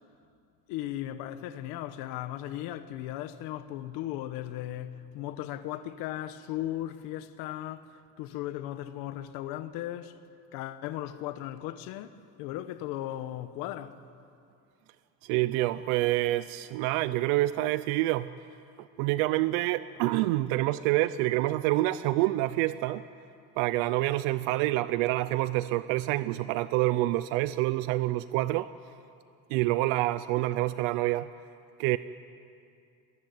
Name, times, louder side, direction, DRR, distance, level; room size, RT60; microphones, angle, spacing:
voice 1, 0.7-10.2 10.5-14.0, left 13 dB, 75° left, 1.2 m, -37 dB
voice 2, 15.2-18.3 18.8-23.0 23.6-28.7 29.5-31.3 31.8-32.0, right 17 dB, 85° right, 0.6 m, -27 dB
21.0 x 21.0 x 9.5 m
cardioid pair, 140°, 35 cm